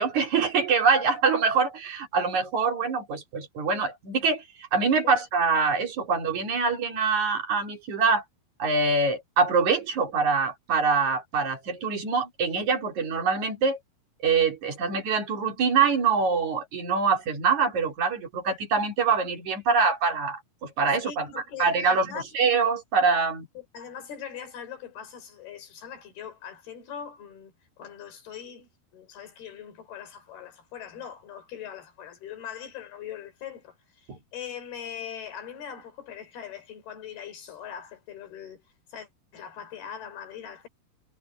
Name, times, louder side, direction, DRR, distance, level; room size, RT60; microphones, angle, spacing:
voice 1, 0.0-4.4 4.7-8.2 8.6-13.8 14.2-21.3 21.6-23.5 34.1-34.2, right 5 dB, 50° right, 3.9 m, -24 dB
voice 2, 21.0-22.3 23.6-33.7 34.3-38.6 38.9-40.7, left 8 dB, 75° left, 5.8 m, -41 dB
omnidirectional pair, 4.5 m